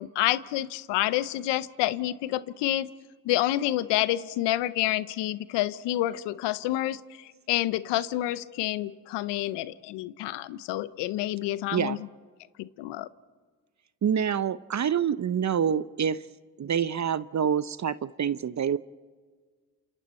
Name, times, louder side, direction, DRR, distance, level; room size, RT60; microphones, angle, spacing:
voice 1, 0.0-2.9 3.2-7.0 7.5-12.0 12.6-13.1, left 15 dB, 90° left, 16 dB, 0.7 m, -28 dB
voice 2, 14.0-16.2 16.6-18.8, right 8 dB, 45° right, 16 dB, 0.7 m, -26 dB
27.5 x 27.5 x 4.4 m, 1.6 s
supercardioid pair, 50°, 41 cm